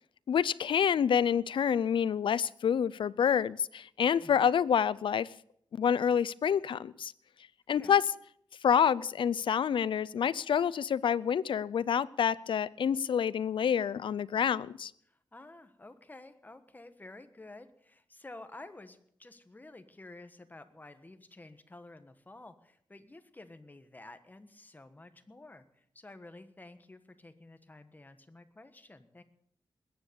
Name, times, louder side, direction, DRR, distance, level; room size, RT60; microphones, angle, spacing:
voice 1, 0.3-5.3 5.7-7.1 7.7-8.0 8.6-14.9, left 8 dB, 90° left, 0.5 m, -28 dB
voice 2, 15.0-29.2, left 2 dB, 20° left, 1.4 m, -51 dB
20.5 x 9.6 x 6.9 m
wide cardioid pair, 105°, 8 cm